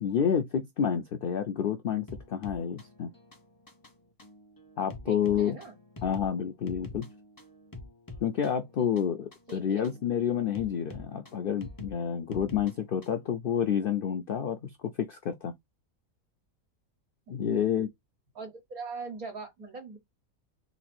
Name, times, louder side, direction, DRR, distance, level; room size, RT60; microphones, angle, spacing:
voice 1, 0.0-3.1 4.8-5.6 6.0-7.1 8.2-14.7 15.0-15.5 17.3-17.9, left 8 dB, 90° left, 0.4 m, -29 dB
sound 1, 2.1-13.3, left 2 dB, 20° left, 0.6 m, -47 dB
voice 2, 5.1-5.8 9.5-9.8 17.5-17.7 18.4-20.0, right 4 dB, 75° right, 2.4 m, -41 dB
4.0 x 2.5 x 4.2 m
omnidirectional pair, 1.5 m